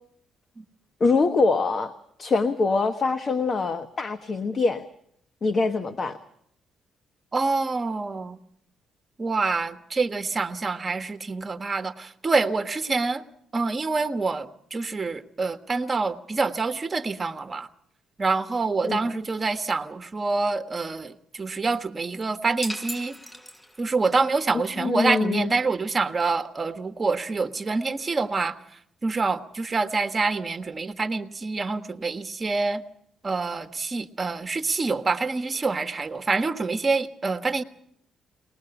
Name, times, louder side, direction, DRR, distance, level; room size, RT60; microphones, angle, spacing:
voice 1, 1.0-1.9 2.2-4.8 5.4-6.2 18.8-19.0 24.8-25.5, left 3 dB, 40° left, 9 dB, 1.1 m, -24 dB
voice 2, 7.3-8.4 9.2-13.2 13.5-17.7 18.2-23.1 23.8-28.6 29.0-32.8 33.2-37.6, right 3 dB, 30° right, 8 dB, 1.3 m, -26 dB
sound 1, 22.6-24.1, equal, 5° left, 0.9 m, -37 dB
22.0 x 20.0 x 7.0 m, 0.71 s
cardioid pair, 90°, 0 cm